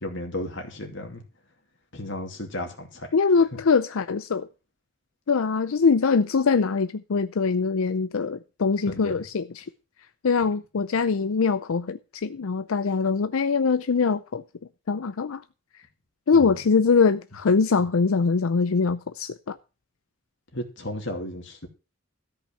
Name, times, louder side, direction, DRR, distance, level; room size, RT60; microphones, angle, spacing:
voice 1, 0.0-1.2 1.9-3.1 8.9-9.1 16.3-16.6 20.5-21.7, left 1 dB, 60° left, 2.5 m, -34 dB
voice 2, 3.1-4.5 5.3-9.6 10.2-14.4 14.9-15.4 16.3-19.6, left 5 dB, 80° left, 0.5 m, -23 dB
13.5 x 5.5 x 7.1 m
head